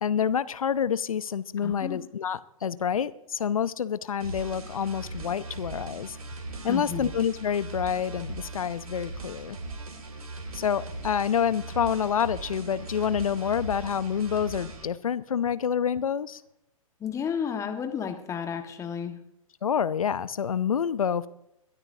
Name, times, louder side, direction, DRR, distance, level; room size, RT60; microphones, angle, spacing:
voice 1, 0.0-6.2 6.6-9.6 10.5-16.4 19.6-21.3, left 8 dB, 70° left, 17 dB, 0.8 m, -28 dB
voice 2, 1.6-2.0 6.7-7.1 17.0-19.2, left 7 dB, 15° left, 6 dB, 1.5 m, -32 dB
sound 1, 4.2-14.9, right 3 dB, 75° right, 2.5 m, -39 dB
22.0 x 13.0 x 2.8 m, 0.80 s
figure-of-eight pair, 120°, 19 cm